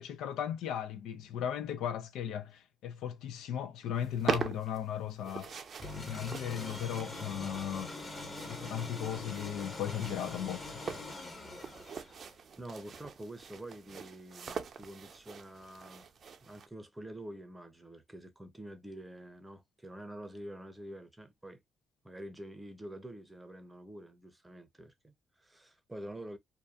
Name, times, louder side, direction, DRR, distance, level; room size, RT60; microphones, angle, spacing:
voice 1, 0.0-5.6 5.9-7.9 8.4-10.8, left 9 dB, 90° left, 0.4 m, -37 dB
sound 1, 3.9-16.7, right 6 dB, 50° right, 0.4 m, -43 dB
sound 2, 5.8-12.3, left 2 dB, 30° left, 1.2 m, -43 dB
voice 2, 12.6-16.1 16.4-21.6 22.0-26.4, right 1 dB, 10° right, 0.7 m, -47 dB
2.6 x 2.2 x 2.3 m
cardioid pair, 90°, 0 cm